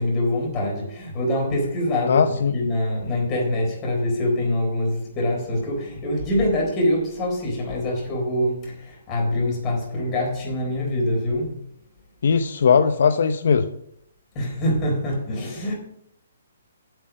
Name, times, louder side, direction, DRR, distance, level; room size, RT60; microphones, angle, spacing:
voice 1, 0.0-2.2 2.5-11.6 14.3-15.7, left 1 dB, 20° left, -2 dB, 4.0 m, -24 dB
voice 2, 2.1-2.5 12.2-13.7, left 6 dB, 65° left, 9 dB, 0.7 m, -19 dB
8.2 x 7.8 x 6.3 m, 0.73 s
hypercardioid pair, 165°, 0 cm